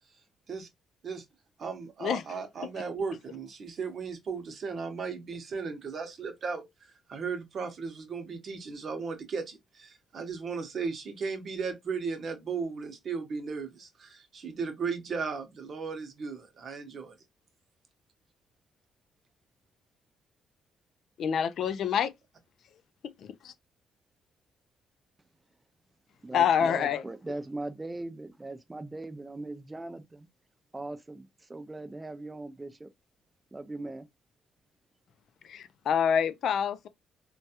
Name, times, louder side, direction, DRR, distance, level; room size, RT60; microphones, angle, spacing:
voice 1, 1.6-6.7 7.1-17.1, right 5 dB, 55° right, 0.8 m, -36 dB
voice 2, 21.2-22.1 23.4-23.5 26.3-27.0 35.4-36.9, left 8 dB, 70° left, 0.3 m, -26 dB
voice 3, 26.2-30.3 30.7-32.9 33.5-34.1, right 2 dB, 20° right, 0.4 m, -39 dB
3.2 x 2.2 x 2.8 m
cardioid pair, 90°, 0 cm